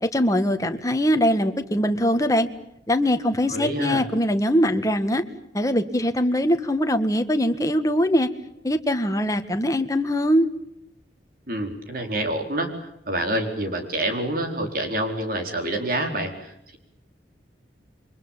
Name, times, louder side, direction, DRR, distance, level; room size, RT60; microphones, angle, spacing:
voice 1, 0.0-2.5 2.9-5.2 5.5-8.3 8.6-10.5, equal, 20° left, 7 dB, 1.7 m, -22 dB
voice 2, 3.5-4.1 11.5-16.8, right 1 dB, 50° right, 5 dB, 4.4 m, -27 dB
28.5 x 24.5 x 7.4 m, 0.77 s
head